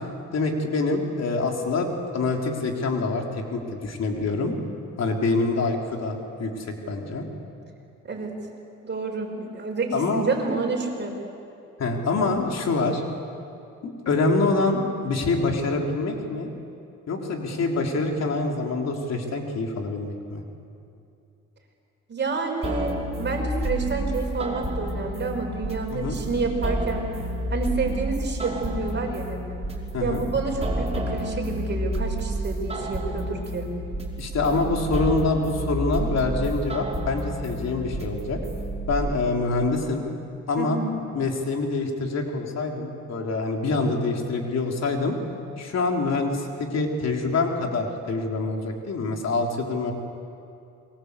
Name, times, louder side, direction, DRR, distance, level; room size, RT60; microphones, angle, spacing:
voice 1, 0.0-1.9 2.1-4.5 5.0-7.3 9.9-10.2 11.8-13.0 13.8-16.5 17.1-20.4 25.9-26.2 29.9-30.2 34.2-38.4 38.9-40.0 40.5-40.8 41.1-45.2 45.6-49.9, left 3 dB, 60° left, 1 dB, 3.8 m, -26 dB
voice 2, 8.0-8.4 8.8-11.2 22.1-27.1 27.5-29.4 30.0-33.7 40.6-40.9, right 3 dB, 35° right, 1 dB, 6.1 m, -29 dB
sound 1, 22.6-38.9, right 1 dB, 20° right, 5.2 m, -30 dB
27.5 x 23.0 x 8.3 m, 2.6 s
cardioid pair, 90°, 30 cm